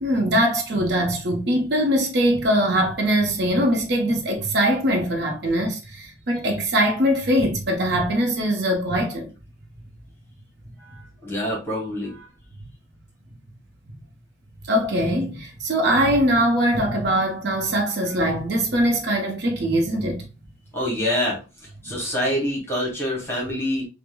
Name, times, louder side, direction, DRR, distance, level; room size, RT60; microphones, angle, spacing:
voice 1, 0.0-9.3 14.7-20.2, equal, 55° right, 0.8 m, -22 dB
voice 2, 10.8-12.3 20.7-23.9, left 1 dB, 10° left, 1.0 m, -26 dB
4.8 x 2.1 x 2.2 m
head